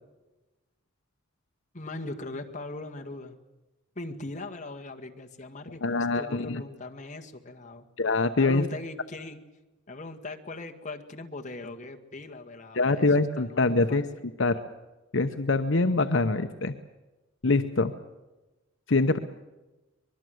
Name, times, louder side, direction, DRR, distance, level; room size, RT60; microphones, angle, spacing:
voice 1, 1.7-3.4 4.0-7.9 8.4-9.4 9.9-13.1 13.4-14.0, left 2 dB, 35° left, 4 dB, 1.9 m, -40 dB
voice 2, 5.8-6.6 8.0-8.6 12.7-14.0 14.4-14.6 15.1-16.7 17.4-17.9 18.9-19.2, left 3 dB, 65° left, 8 dB, 0.9 m, -24 dB
24.0 x 21.5 x 7.9 m, 1.1 s
head